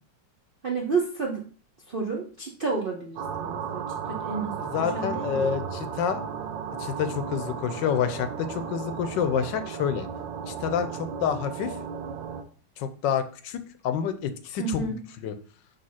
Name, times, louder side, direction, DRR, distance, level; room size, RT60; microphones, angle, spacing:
voice 1, 0.6-1.5 1.9-5.5 14.6-15.0, right 4 dB, 50° right, 0 dB, 0.6 m, -31 dB
sound 1, 3.2-12.4, right 6 dB, 80° right, 1.4 m, -35 dB
voice 2, 4.7-6.2 6.8-10.1 10.5-11.8 12.8-15.4, left 8 dB, 80° left, 10 dB, 1.3 m, -28 dB
5.4 x 3.4 x 5.6 m, 0.42 s
omnidirectional pair, 2.0 m